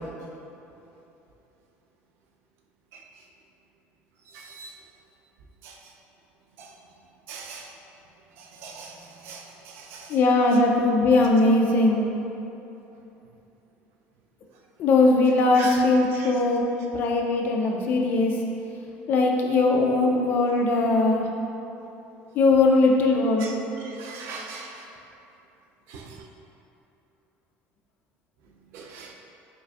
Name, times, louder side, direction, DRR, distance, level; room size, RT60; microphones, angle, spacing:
voice 1, 4.3-4.7 5.6-5.8 6.6-6.7 7.3-7.7 8.4-10.2 15.6-15.8 16.2-16.3 23.4-23.5 23.8-24.9 25.9-26.2 28.7-29.1, right 4 dB, 60° right, 0 dB, 0.4 m, -40 dB
voice 2, 10.1-12.0 14.8-16.6 16.9-18.4 19.1-21.3 22.3-23.5, left 2 dB, 45° left, 0 dB, 0.3 m, -20 dB
4.6 x 2.5 x 2.3 m, 2.9 s
cardioid pair, 165°, 5 cm